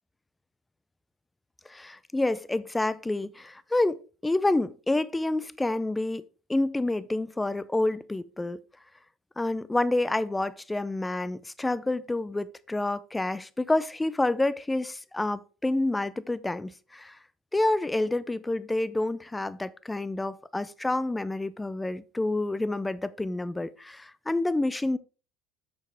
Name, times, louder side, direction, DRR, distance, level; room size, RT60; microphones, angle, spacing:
voice 1, 1.7-6.2 6.5-8.6 9.4-17.2 17.5-25.0, left 2 dB, 10° left, 0.5 m, -28 dB
8.7 x 6.4 x 3.4 m
supercardioid pair, 120°, 0 cm